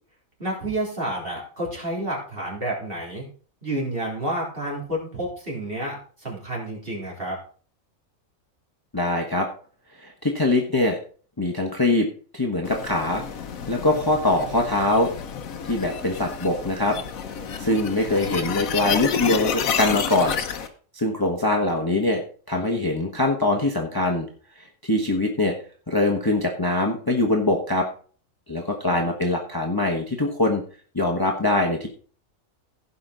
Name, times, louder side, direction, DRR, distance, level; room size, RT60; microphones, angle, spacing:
voice 1, 0.4-3.3 3.6-7.4 18.1-18.5 28.9-29.0, right 1 dB, 45° right, -3 dB, 3.8 m, -30 dB
voice 2, 8.9-9.5 10.0-11.0 11.4-12.1 12.3-13.2 13.7-15.1 15.6-17.0 17.6-20.4 20.9-22.2 22.5-24.3 24.6-25.5 25.9-27.9 28.5-30.6 30.9-31.9, left 2 dB, 15° left, 2 dB, 1.1 m, -23 dB
sound 1, 12.6-20.7, left 7 dB, 85° left, 1.3 m, -30 dB
16.0 x 5.5 x 3.9 m, 0.42 s
omnidirectional pair, 1.4 m